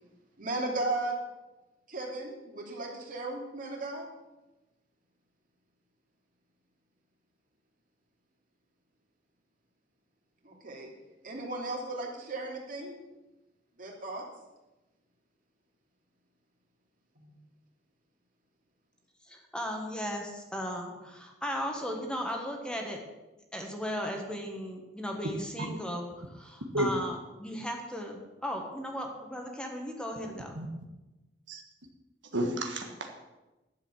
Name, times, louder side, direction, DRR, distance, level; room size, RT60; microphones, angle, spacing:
voice 1, 0.4-1.2 1.9-4.1 10.4-10.9 11.2-13.0 13.8-14.2 17.2-17.3, right 2 dB, 50° right, 0 dB, 2.8 m, -35 dB
voice 2, 19.2-23.0 23.5-30.6, equal, 5° left, 2 dB, 1.5 m, -36 dB
voice 3, 32.3-33.2, right 1 dB, 90° right, 3 dB, 1.6 m, -31 dB
11.5 x 7.5 x 7.1 m, 1.1 s
head